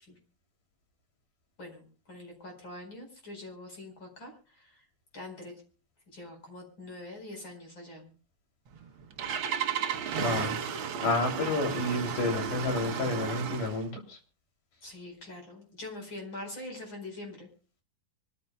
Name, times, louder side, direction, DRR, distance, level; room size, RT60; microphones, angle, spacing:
voice 1, 1.6-4.8 5.1-5.5 6.1-8.1 14.8-17.5, left 2 dB, 35° left, 2 dB, 5.4 m, -44 dB
Engine starting, 8.7-13.9, right 7 dB, 80° right, 1.1 m, -33 dB
voice 2, 10.2-14.2, left 2 dB, 70° left, 3 dB, 4.6 m, -30 dB
25.0 x 13.5 x 2.3 m, 0.37 s
omnidirectional pair, 3.8 m